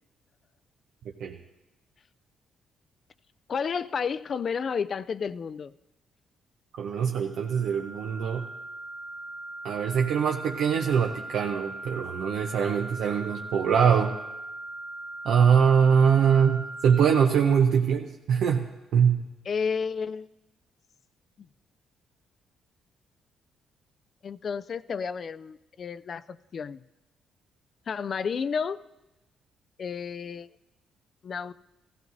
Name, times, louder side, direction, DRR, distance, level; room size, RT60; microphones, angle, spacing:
voice 1, 3.5-5.7 19.5-20.3 24.2-26.8 27.9-28.8 29.8-30.5 31.2-31.5, left 6 dB, 50° left, 0.3 m, -31 dB
voice 2, 6.8-8.5 9.6-14.1 15.2-19.3, right 7 dB, 80° right, 0.7 m, -23 dB
sound 1, 7.3-17.2, right 2 dB, 20° right, 1.8 m, -40 dB
15.5 x 15.0 x 2.6 m
cardioid pair, 90°, 0 cm